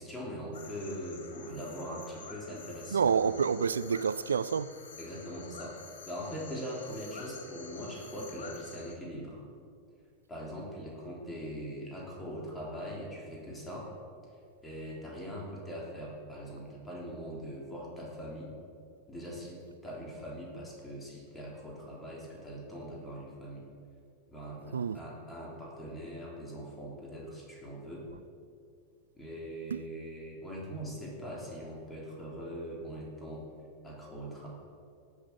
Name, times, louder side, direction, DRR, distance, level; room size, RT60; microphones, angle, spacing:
voice 1, 0.0-3.5 5.0-5.8 6.0-9.4 10.3-13.9 14.6-18.5 19.1-23.6 24.3-28.1 29.1-33.4 33.8-34.5, equal, 10° left, 3.4 m, -41 dB
sound 1, 0.5-8.9, left 5 dB, 60° left, 1.4 m, -49 dB
voice 2, 2.9-4.7 24.7-25.0 29.7-29.8, right 6 dB, 70° right, 0.3 m, -28 dB
13.5 x 7.3 x 7.0 m
figure-of-eight pair, 90°, 0 cm